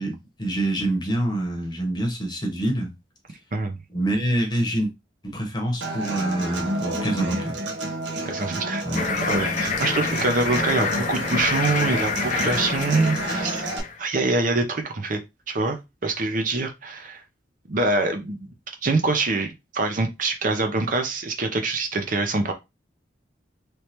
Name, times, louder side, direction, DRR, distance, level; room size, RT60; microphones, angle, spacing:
voice 1, 0.0-2.9 3.9-4.9 5.2-7.6 8.8-9.2, right 1 dB, 25° left, 0.9 m, -26 dB
Human voice / Acoustic guitar, 5.8-13.8, right 1 dB, 80° right, 1.0 m, -30 dB
voice 2, 8.2-8.8 9.2-13.6 14.0-15.2 15.5-17.2 17.7-18.5 18.8-22.5, right 3 dB, 45° right, 0.6 m, -25 dB
sound 1, 8.9-14.0, left 5 dB, 45° left, 0.5 m, -27 dB
3.2 x 3.2 x 2.9 m
head